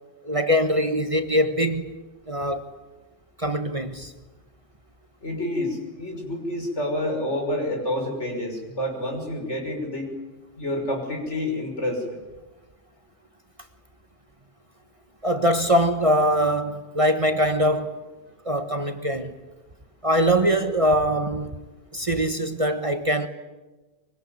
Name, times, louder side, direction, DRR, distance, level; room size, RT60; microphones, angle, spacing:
voice 1, 0.2-1.9 2.3-2.8 3.4-4.1 15.2-17.9 18.4-19.3 20.0-21.6 21.9-23.3, equal, 30° right, 1.4 m, -22 dB
voice 2, 5.2-10.1 10.6-12.2, left 1 dB, 70° left, 6.3 m, -28 dB
24.5 x 23.5 x 9.6 m
omnidirectional pair, 1.2 m